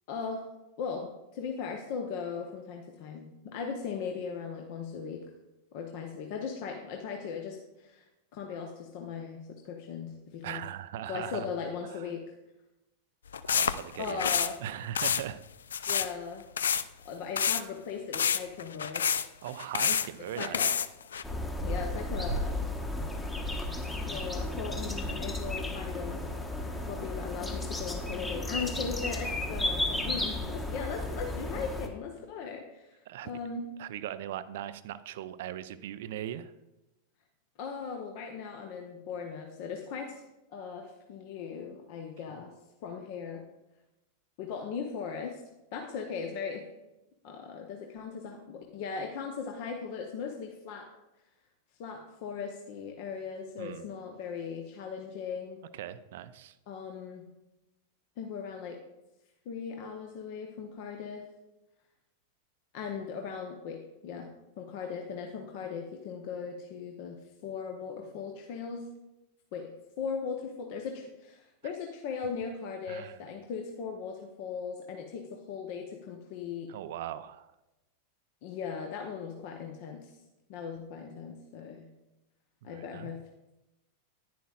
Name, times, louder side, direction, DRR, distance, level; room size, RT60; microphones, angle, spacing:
voice 1, 0.1-0.4 0.8-5.2 5.7-8.1 8.3-10.6 11.1-12.2 14.0-14.6 15.9-16.4 17.0-19.1 20.4-20.7 21.6-22.6 24.1-26.2 26.9-33.6 37.6-40.2 40.5-42.5 42.8-43.4 44.4-45.4 45.7-46.7 47.2-50.9 51.8-55.6 56.7-57.3 58.2-58.8 59.5-61.3 62.7-64.3 64.6-68.9 69.5-76.7 78.4-80.1 80.5-81.8 82.6-83.2, left 6 dB, 45° left, 3 dB, 0.9 m, -38 dB
voice 2, 10.4-11.5 11.9-12.1 13.5-14.3 14.6-15.4 19.4-20.6 29.9-30.6 33.1-33.3 33.8-36.5 53.6-53.9 55.7-56.5 72.9-73.2 76.7-77.5 82.6-83.1, right 11 dB, 55° right, 14 dB, 0.4 m, -39 dB
sound 1, 13.3-14.5 14.9-15.2 15.7-16.1 16.6-16.8 17.4-17.6 18.1-20.1 20.4-21.2, left 7 dB, 65° left, 0.3 m, -28 dB
sound 2, 21.2-31.9, left 1 dB, 10° left, 1.1 m, -34 dB
10.5 x 10.0 x 2.4 m, 0.97 s
figure-of-eight pair, 90°, 0 cm